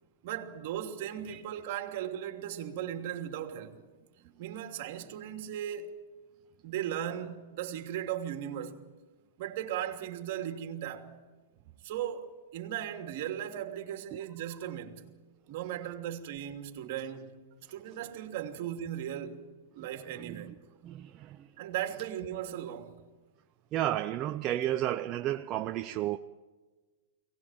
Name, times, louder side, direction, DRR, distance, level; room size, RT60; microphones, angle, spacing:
voice 1, 0.2-3.8 4.4-6.0 6.6-8.8 9.4-11.1 11.8-15.1 15.5-17.4 17.7-19.4 19.7-20.6 21.6-23.0, right 10 dB, 55° right, 2.9 m, -37 dB
voice 2, 20.2-20.5 20.8-21.5 23.7-26.2, right 13 dB, 35° right, 0.7 m, -32 dB
23.0 x 19.0 x 9.2 m
hypercardioid pair, 130°, 0 cm